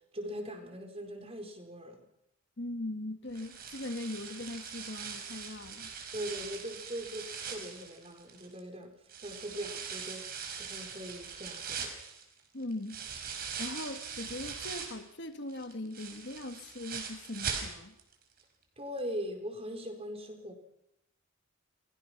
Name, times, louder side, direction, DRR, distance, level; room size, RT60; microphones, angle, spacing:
voice 1, 0.1-2.0 6.1-8.9 9.2-10.3 10.6-11.9 18.8-20.5, equal, 30° right, 4.3 m, -40 dB
voice 2, 2.6-5.9 12.5-13.3 13.6-17.9, left 1 dB, 55° left, 1.7 m, -40 dB
sound 1, 3.3-8.6 9.1-15.1 15.5-18.1 18.4-18.5 19.0-19.1, right 6 dB, 45° right, 5.1 m, -41 dB
29.0 x 23.0 x 6.0 m
head